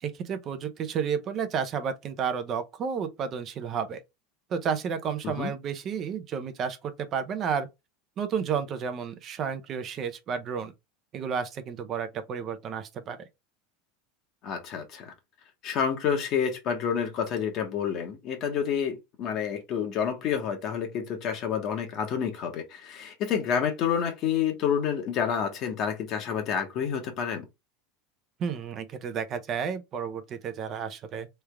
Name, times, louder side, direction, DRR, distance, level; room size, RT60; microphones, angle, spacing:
voice 1, 0.0-4.0 4.5-7.7 8.2-10.7 11.1-13.3 28.4-31.3, right 7 dB, 30° right, 0.6 m, -31 dB
voice 2, 14.4-15.1 15.6-27.4, left 7 dB, 40° left, 1.1 m, -29 dB
3.5 x 3.3 x 3.4 m
supercardioid pair, 150°, 0 cm